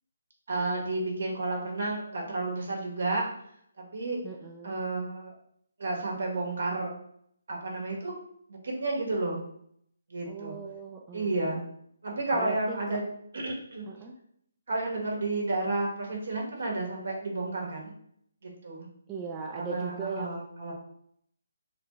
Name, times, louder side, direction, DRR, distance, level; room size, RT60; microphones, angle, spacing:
voice 1, 0.5-3.2 3.8-4.2 4.6-5.3 5.8-6.9 7.5-8.1 8.5-9.4 10.1-10.6 11.1-11.6 12.0-13.0 13.3-13.8 14.7-17.9 18.4-18.9 19.5-20.7, right 2 dB, 70° right, -1 dB, 1.2 m, -31 dB
voice 2, 4.2-4.8 10.3-11.4 12.3-13.0 13.9-14.1 19.1-20.4, right 5 dB, 15° right, 0 dB, 0.3 m, -39 dB
3.7 x 2.3 x 3.0 m, 0.69 s
hypercardioid pair, 155°, 0 cm